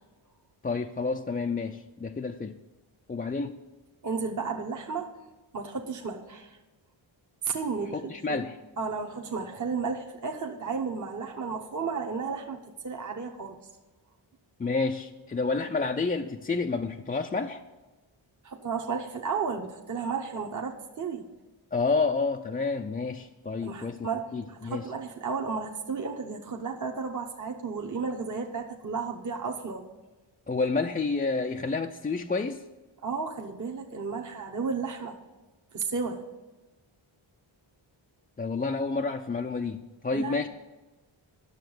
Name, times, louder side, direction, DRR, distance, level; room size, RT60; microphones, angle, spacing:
voice 1, 0.6-2.5 3.1-3.6 7.9-8.6 14.6-17.6 21.7-24.1 24.3-24.8 30.5-32.6 38.4-40.5, left 4 dB, 20° left, 4 dB, 0.3 m, -29 dB
voice 2, 4.0-5.1 5.5-6.6 7.4-8.4 8.8-13.6 18.4-21.2 23.6-29.9 33.0-35.2 35.7-36.2 40.1-40.4, right 5 dB, 35° right, 2 dB, 0.9 m, -33 dB
10.5 x 6.8 x 7.8 m, 1.2 s
wide cardioid pair, 115°, 49 cm